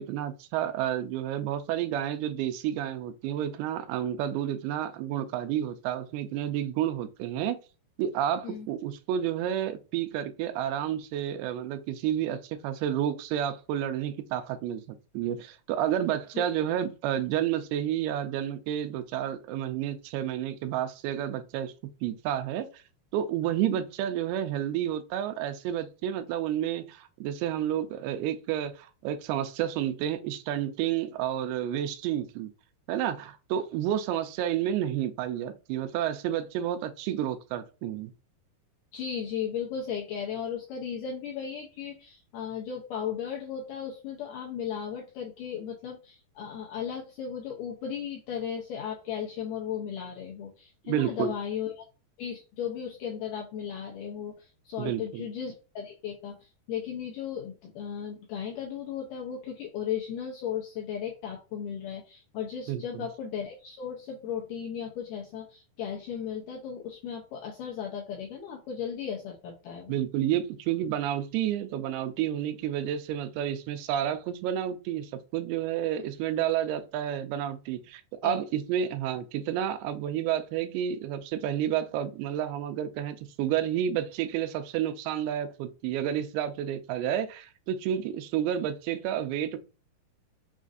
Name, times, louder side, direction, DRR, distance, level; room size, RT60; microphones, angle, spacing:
voice 1, 0.0-7.6 8.0-21.7 22.0-22.7 23.1-32.5 32.9-38.1 50.9-51.3 54.8-55.3 62.7-63.1 69.9-89.6, right 10 dB, 85° right, 2.5 m, -30 dB
voice 2, 38.9-51.9 52.2-70.0 78.2-78.4, left 8 dB, 80° left, 1.9 m, -36 dB
6.2 x 2.4 x 2.5 m
omnidirectional pair, 4.5 m